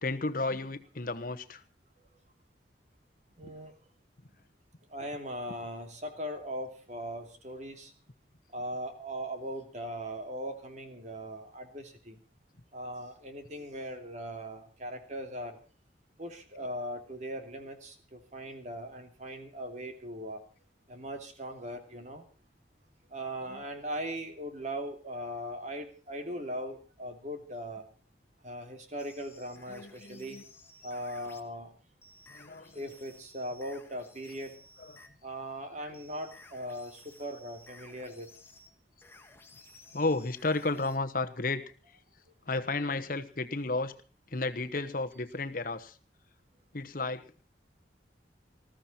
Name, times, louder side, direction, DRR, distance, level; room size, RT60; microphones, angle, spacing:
voice 1, 0.0-1.6 23.5-23.6 29.7-30.4 32.3-32.7 39.9-41.6 42.5-43.9 44.3-46.0 46.7-47.3, left 3 dB, 50° left, 8 dB, 1.2 m, -32 dB
voice 2, 3.4-3.7 4.9-7.9 8.5-12.2 12.7-15.6 16.2-20.4 20.9-22.2 23.1-27.8 28.4-30.4 30.8-31.7 32.7-34.6 35.2-38.3, equal, 40° right, 6 dB, 2.8 m, -39 dB
sound 1, 29.0-31.5 32.0-35.1 35.9-41.0, left 2 dB, 15° left, 1.8 m, -56 dB
20.0 x 14.5 x 4.4 m, 0.36 s
head